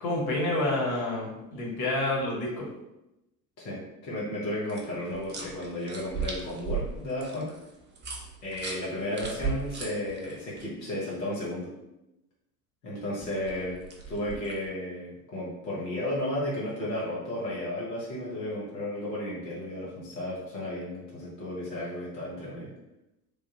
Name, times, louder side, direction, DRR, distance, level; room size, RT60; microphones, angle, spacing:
voice 1, 0.0-2.7, left 2 dB, 50° left, -2 dB, 1.3 m, -28 dB
voice 2, 3.6-7.5 8.4-11.7 12.8-13.8 14.1-22.7, left 1 dB, 85° left, -7 dB, 1.1 m, -33 dB
sound 1, 4.7-10.6 13.2-14.7, right 5 dB, 20° right, 0.6 m, -37 dB
3.3 x 2.2 x 2.9 m, 0.90 s
figure-of-eight pair, 65°, 49 cm